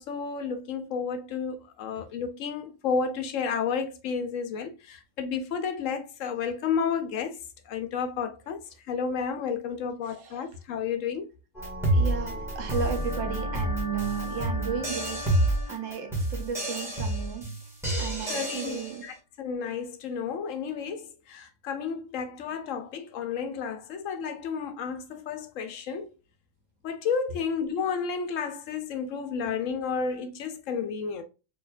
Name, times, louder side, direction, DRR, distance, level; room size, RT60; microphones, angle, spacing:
voice 1, 0.0-7.4 7.7-11.3 18.3-26.1 26.8-31.2, left 6 dB, 75° left, 1.0 m, -32 dB
sound 1, 11.6-19.0, right 1 dB, ahead, 1.7 m, -29 dB
voice 2, 11.9-15.3 15.7-17.5 18.0-19.0, right 7 dB, 75° right, 1.1 m, -34 dB
4.4 x 2.9 x 2.4 m
omnidirectional pair, 1.3 m